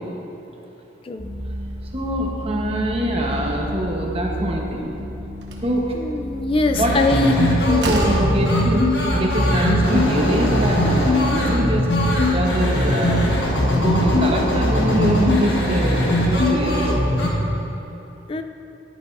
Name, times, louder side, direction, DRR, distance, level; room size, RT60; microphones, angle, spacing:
sound 1, 1.2-15.0, equal, 10° right, 0.9 m, -31 dB
voice 1, 1.9-4.9 5.6-5.8 6.8-6.9 7.2-13.3 13.7-16.9, right 1 dB, 35° right, -1 dB, 1.0 m, -23 dB
Slam, 5.4-5.7 7.3-7.4 7.8-8.3, right 1 dB, 70° right, 1.1 m, -25 dB
voice 2, 5.9-7.3 18.3-18.4, left 2 dB, 30° left, 7 dB, 0.3 m, -22 dB
sound 2, 6.7-17.3, left 1 dB, 70° left, 1.2 m, -20 dB
10.5 x 9.8 x 2.6 m, 3.0 s
head